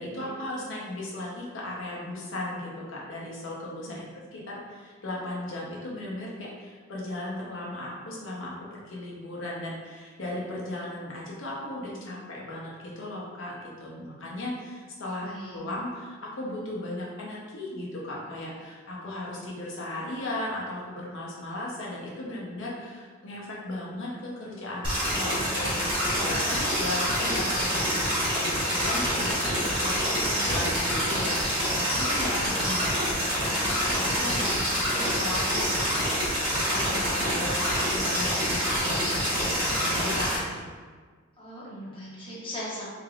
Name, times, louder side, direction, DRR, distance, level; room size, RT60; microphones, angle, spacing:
voice 1, 0.0-40.6, left 1 dB, 65° left, -5 dB, 0.9 m, -36 dB
voice 2, 15.2-15.6 30.2-30.6 36.8-37.1 41.4-42.9, equal, 25° left, -7 dB, 1.1 m, -40 dB
sound 1, 24.8-40.4, equal, 25° right, 1.2 m, -26 dB
3.6 x 3.3 x 2.5 m, 1.5 s
head